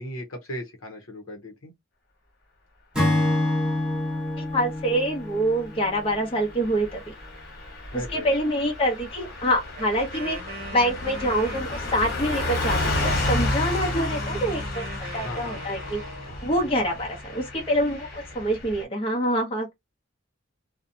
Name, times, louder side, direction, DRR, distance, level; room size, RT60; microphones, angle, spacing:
voice 1, 0.0-1.7 7.9-8.3 15.2-15.6, left 1 dB, 75° left, 0.8 m, -37 dB
Acoustic guitar / Strum, 2.9-6.4, left 1 dB, 5° right, 0.9 m, -26 dB
voice 2, 4.4-7.0 7.9-10.4 10.7-14.8 15.1-16.0 16.4-19.7, equal, 25° left, 0.7 m, -26 dB
Car passing by / Truck, 5.8-18.8, left 2 dB, 45° left, 1.2 m, -31 dB
Wind instrument woodwind instrument, 9.8-16.4, right 2 dB, 45° right, 0.8 m, -41 dB
2.6 x 2.1 x 2.6 m
head